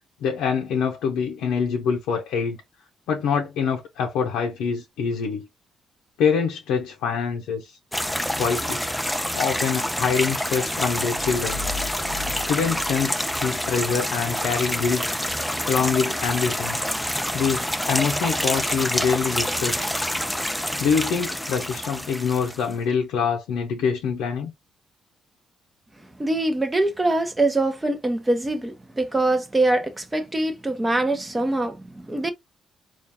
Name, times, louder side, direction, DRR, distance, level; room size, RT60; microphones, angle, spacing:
voice 1, 0.2-2.6 3.1-5.5 6.2-7.8 8.4-8.8 9.3-11.6 12.5-15.0 15.6-16.8 17.3-19.9 20.8-24.5, left 6 dB, 90° left, 0.6 m, -25 dB
sound 1, 7.9-22.7, equal, 5° left, 0.4 m, -27 dB
sound 2, 11.1-14.1, left 6 dB, 75° right, 1.0 m, -37 dB
voice 2, 26.2-32.3, right 2 dB, 15° right, 0.8 m, -23 dB
3.6 x 2.4 x 2.8 m
cardioid pair, 90°, 0 cm